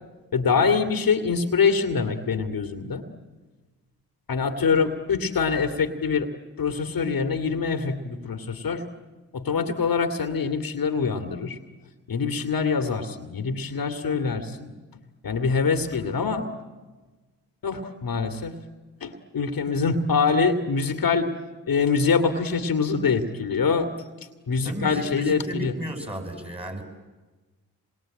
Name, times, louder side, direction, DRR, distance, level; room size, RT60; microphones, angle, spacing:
voice 1, 0.3-3.0 4.3-6.3 6.6-8.8 9.3-11.6 12.1-14.7 15.2-16.5 17.6-18.5 19.0-21.3 21.7-23.9 24.5-25.7, left 5 dB, 60° left, 7 dB, 2.3 m, -24 dB
voice 2, 24.6-26.8, right 1 dB, 15° right, 6 dB, 6.7 m, -34 dB
26.5 x 22.0 x 8.9 m, 1.2 s
supercardioid pair, 55°, 39 cm